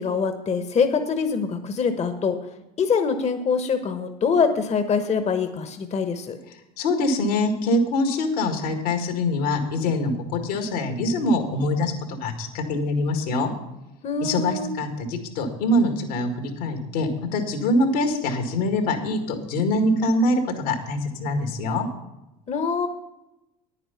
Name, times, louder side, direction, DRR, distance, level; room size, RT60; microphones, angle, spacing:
voice 1, 0.0-2.4 2.8-6.4 14.0-14.7 22.5-22.9, left 5 dB, 35° left, 8 dB, 1.0 m, -24 dB
voice 2, 6.8-13.5 14.2-21.9, left 1 dB, 75° left, 5 dB, 2.0 m, -24 dB
9.8 x 9.4 x 5.7 m, 0.94 s
hypercardioid pair, 75°, 20 cm